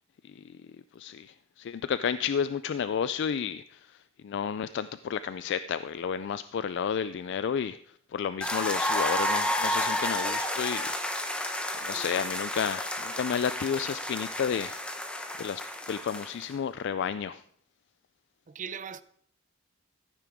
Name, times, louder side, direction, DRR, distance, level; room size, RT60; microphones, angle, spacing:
voice 1, 1.0-7.8 8.1-11.4 11.8-14.8 15.4-17.4, left 7 dB, 55° left, 0.3 m, -32 dB
sound 1, 8.4-16.5, left 1 dB, 5° left, 0.8 m, -31 dB
voice 2, 11.9-12.3 18.5-19.0, right 6 dB, 35° right, 0.5 m, -40 dB
14.0 x 9.1 x 3.5 m
head